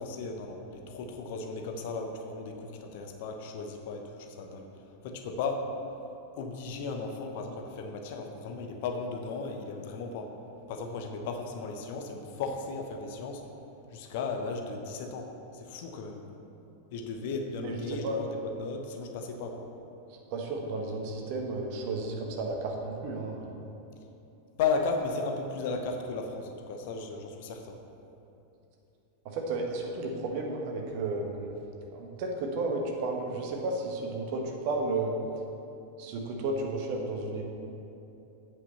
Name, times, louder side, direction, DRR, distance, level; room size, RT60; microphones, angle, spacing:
voice 1, 0.0-4.7 5.0-5.7 6.3-10.3 10.7-13.5 13.9-16.2 16.9-19.7 24.6-27.8, left 4 dB, 50° left, 4 dB, 0.9 m, -35 dB
voice 2, 17.6-18.2 20.3-23.6 29.2-31.5 31.9-35.1 36.0-37.4, right 2 dB, 45° right, 1 dB, 1.2 m, -33 dB
8.1 x 5.7 x 6.8 m, 2.9 s
figure-of-eight pair, 90°, 0 cm